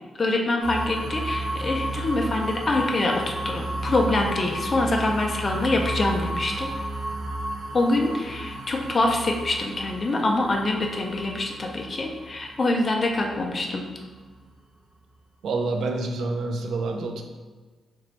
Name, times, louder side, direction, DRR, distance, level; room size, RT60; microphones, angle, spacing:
voice 1, 0.2-6.7 7.7-13.8, left 2 dB, 30° left, 1 dB, 0.4 m, -25 dB
sound 1, 0.6-14.4, right 1 dB, 35° right, 1.0 m, -33 dB
voice 2, 15.4-17.2, right 3 dB, 75° right, 3 dB, 0.4 m, -27 dB
4.3 x 3.0 x 3.0 m, 1.4 s
wide cardioid pair, 165°, 0 cm